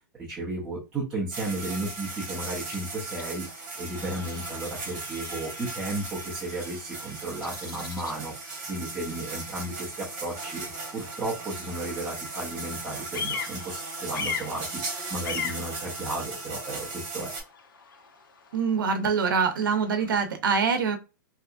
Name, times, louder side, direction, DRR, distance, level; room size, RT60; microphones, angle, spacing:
voice 1, 0.2-17.3, right 2 dB, 5° right, -8 dB, 0.6 m, -34 dB
sound 1, 1.3-17.4, right 3 dB, 30° right, 1.5 m, -37 dB
Bird vocalization bird call bird song, 1.6-20.3, left 6 dB, 75° left, 0.8 m, -42 dB
voice 2, 18.5-21.0, right 5 dB, 75° right, 7 dB, 0.7 m, -24 dB
3.4 x 2.8 x 2.4 m, 0.29 s
hypercardioid pair, 175°, 11 cm